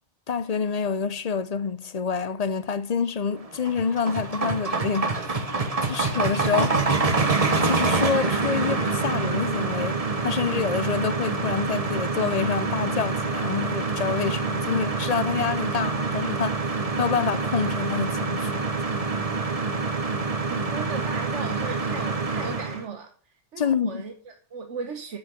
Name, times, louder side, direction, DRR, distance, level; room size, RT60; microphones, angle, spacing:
voice 1, 0.3-5.1 5.8-6.8 7.6-16.6 17.0-18.7 23.6-24.0, left 6 dB, 40° left, 0.7 m, -27 dB
sound 1, 3.4-22.8, right 3 dB, 35° right, 1.2 m, -26 dB
voice 2, 20.5-25.2, right 5 dB, 85° right, 1.4 m, -37 dB
8.7 x 6.0 x 7.5 m
omnidirectional pair, 1.2 m